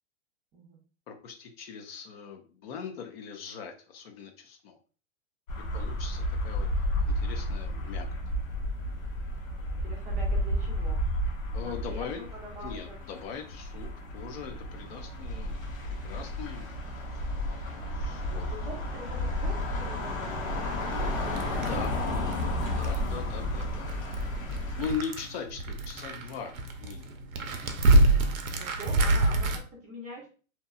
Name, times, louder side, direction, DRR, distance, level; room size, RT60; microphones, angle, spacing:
voice 1, 1.1-4.8 5.7-8.1 11.5-12.2 12.6-15.6 15.8-16.7 17.1-17.2 17.9-18.5 21.6-22.0 22.8-24.2 24.8-26.5 26.8-27.1 28.9-29.2, left 6 dB, 50° left, 5 dB, 0.6 m, -40 dB
sound 1, 5.5-25.0, left 1 dB, 80° left, 1.1 m, -32 dB
voice 2, 5.5-5.9 9.7-11.0 11.5-13.0 14.7-15.3 18.3-22.1 22.5-23.3 27.5-30.3, right 1 dB, 20° right, -2 dB, 0.5 m, -46 dB
sound 2, 21.3-29.6, right 2 dB, 90° right, 0.6 m, -27 dB
2.8 x 2.2 x 2.2 m, 0.38 s
hypercardioid pair, 125°, 40 cm